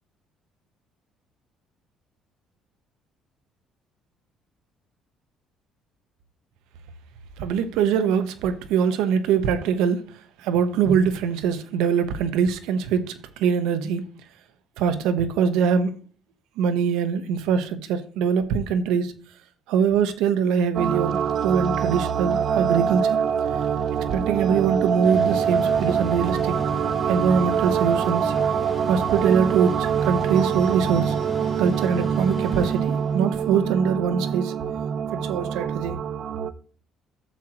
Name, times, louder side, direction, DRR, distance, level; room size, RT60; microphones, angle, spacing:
voice 1, 7.4-10.0 10.4-14.1 14.8-15.9 16.6-19.1 19.7-23.2 24.1-26.5 27.1-28.3 28.9-31.2 31.6-34.5 35.1-36.0, right 7 dB, 85° right, 1.1 m, -23 dB
sound 1, 20.7-36.5, right 7 dB, 50° right, 0.6 m, -24 dB
Mechanical fan, 25.0-33.5, equal, 25° left, 1.9 m, -35 dB
11.5 x 7.7 x 3.0 m
cardioid pair, 110°, 0 cm